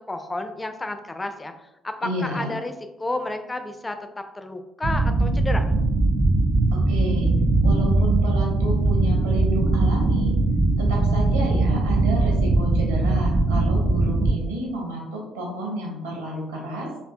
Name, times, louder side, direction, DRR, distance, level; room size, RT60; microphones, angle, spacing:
voice 1, 0.1-1.5 1.8-2.7 3.0-4.0 4.4-5.7, left 2 dB, 20° left, 7 dB, 0.4 m, -31 dB
voice 2, 2.0-2.5 6.7-7.3 7.6-10.4 10.8-16.9, right 1 dB, 80° right, -1 dB, 0.8 m, -31 dB
sound 1, 4.8-14.3, right 2 dB, 40° right, 0.5 m, -20 dB
4.2 x 2.6 x 2.2 m, 0.91 s
figure-of-eight pair, 45°, 0 cm